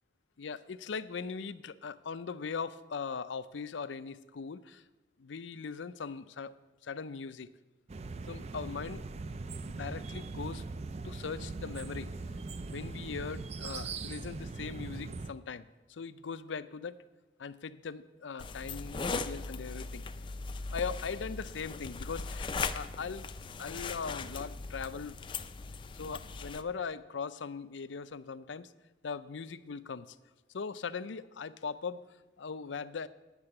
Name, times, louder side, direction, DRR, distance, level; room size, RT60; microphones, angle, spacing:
voice 1, 0.4-4.8 5.2-6.5 6.8-7.5 8.3-9.0 9.7-10.6 11.0-12.2 12.7-17.0 17.4-20.0 20.7-23.3 23.6-25.2 25.9-28.7 29.0-30.2 30.5-33.1, left 5 dB, 85° left, 15 dB, 0.5 m, -40 dB
sound 1, 7.9-15.3, right 3 dB, 35° right, 0.4 m, -40 dB
sound 2, 18.4-26.6, left 4 dB, 25° left, 0.4 m, -39 dB
9.6 x 6.7 x 8.6 m, 1.1 s
head